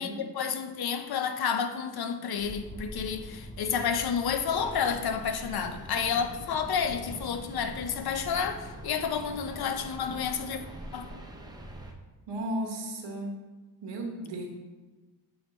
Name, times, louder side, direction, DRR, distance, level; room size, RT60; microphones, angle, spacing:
voice 1, 0.0-10.6 10.9-11.1, left 7 dB, 60° left, 0.6 m, -30 dB
sound 1, 2.4-8.8, equal, 10° left, 1.0 m, -46 dB
sound 2, 4.5-11.9, right 1 dB, 10° right, 0.6 m, -44 dB
voice 2, 12.3-13.3 13.8-14.5, right 1 dB, 85° right, 1.2 m, -34 dB
7.9 x 3.1 x 4.1 m
cardioid pair, 105°, 42 cm